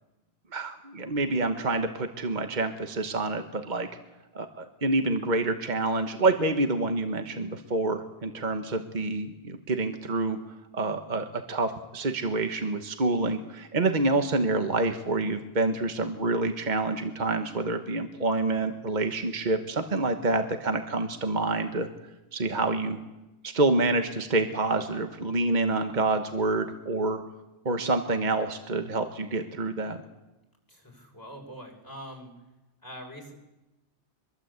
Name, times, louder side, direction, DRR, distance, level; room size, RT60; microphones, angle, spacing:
voice 1, 0.5-3.9 4.3-10.4 10.7-21.9 22.3-23.0 23.4-27.2 27.6-30.0, right 2 dB, 45° right, 7 dB, 1.4 m, -27 dB
voice 2, 30.7-32.3 32.8-33.3, equal, 20° left, 0 dB, 5.8 m, -43 dB
24.5 x 21.5 x 8.1 m, 1.0 s
omnidirectional pair, 1.1 m